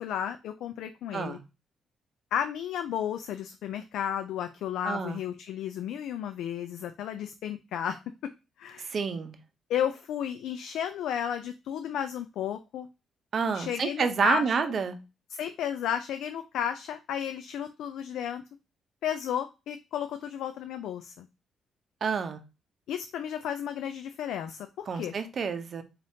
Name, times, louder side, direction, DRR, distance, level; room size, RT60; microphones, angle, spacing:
voice 1, 0.0-1.4 2.3-8.3 8.6-9.0 9.7-12.9 13.5-14.7 15.3-18.4 19.0-21.3 22.9-25.1, left 9 dB, 80° left, 0.3 m, -33 dB
voice 2, 4.8-5.2 8.9-9.3 13.3-15.0 22.0-22.4 24.9-25.8, right 5 dB, 50° right, 0.6 m, -28 dB
4.0 x 3.4 x 2.7 m
cardioid pair, 90°, 0 cm